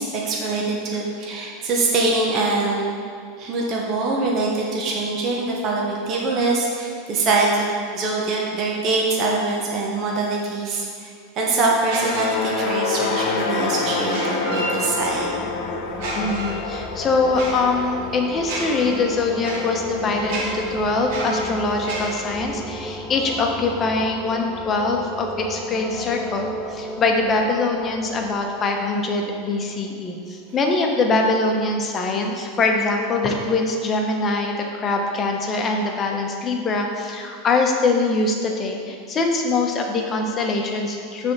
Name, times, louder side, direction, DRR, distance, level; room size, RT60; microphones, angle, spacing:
voice 1, 0.0-2.9 3.4-11.1 11.4-15.5, right 3 dB, 40° right, -2 dB, 1.0 m, -23 dB
sound 1, 11.9-12.9 14.0-15.3 15.9-22.2, right 2 dB, 65° right, 1.2 m, -32 dB
sound 2, 12.0-20.3, left 4 dB, 65° left, 0.8 m, -28 dB
sound 3, 14.8-30.3, equal, 15° left, 0.6 m, -34 dB
voice 2, 16.1-41.3, left 3 dB, 30° left, 2 dB, 0.9 m, -23 dB
6.3 x 3.6 x 6.0 m, 2.2 s
hypercardioid pair, 100°, 0 cm